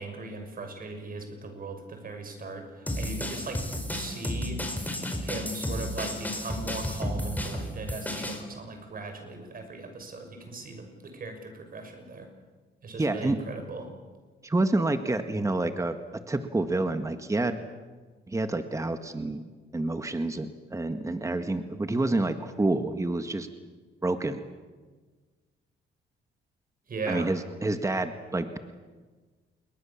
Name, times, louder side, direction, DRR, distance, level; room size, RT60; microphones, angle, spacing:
voice 1, 0.0-3.6 3.9-4.6 5.2-12.3 12.8-13.9 26.9-27.3, right 3 dB, 45° right, 5 dB, 6.5 m, -38 dB
sound 1, 2.9-8.4, equal, 10° left, 4.8 m, -32 dB
voice 2, 13.0-13.4 14.4-16.0 16.3-17.6 18.3-23.5 24.0-24.4 27.1-28.5, right 2 dB, 15° right, 8 dB, 1.7 m, -28 dB
28.0 x 21.5 x 7.3 m, 1.4 s
cardioid pair, 90°, 20 cm